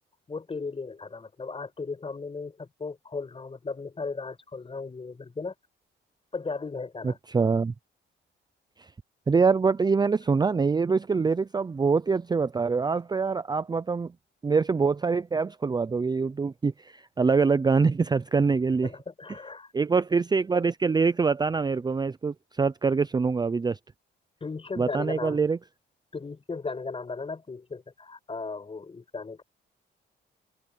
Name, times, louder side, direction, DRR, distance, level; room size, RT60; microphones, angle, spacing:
voice 1, 0.3-5.5 6.3-7.2 18.8-19.7 24.4-25.4 26.1-29.4, left 4 dB, 30° left, 5.1 m, -36 dB
voice 2, 7.3-7.7 9.3-14.1 14.4-18.9 19.7-23.8 24.8-25.6, right 4 dB, 20° right, 0.5 m, -24 dB
open air
cardioid pair, 90°, 20 cm